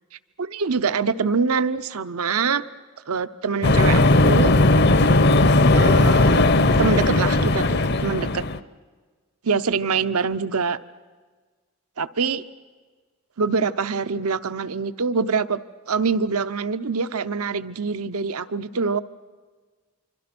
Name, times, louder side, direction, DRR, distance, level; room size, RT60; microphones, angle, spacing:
voice 1, 0.4-2.6 3.1-4.5 5.7-6.5 6.8-8.4 9.4-10.8 12.0-12.4 13.4-15.6 15.9-19.0, right 5 dB, 85° right, 13 dB, 0.8 m, -24 dB
sound 1, 3.6-8.6, left 2 dB, 50° left, 0.7 m, -17 dB
26.5 x 25.0 x 6.1 m, 1.4 s
head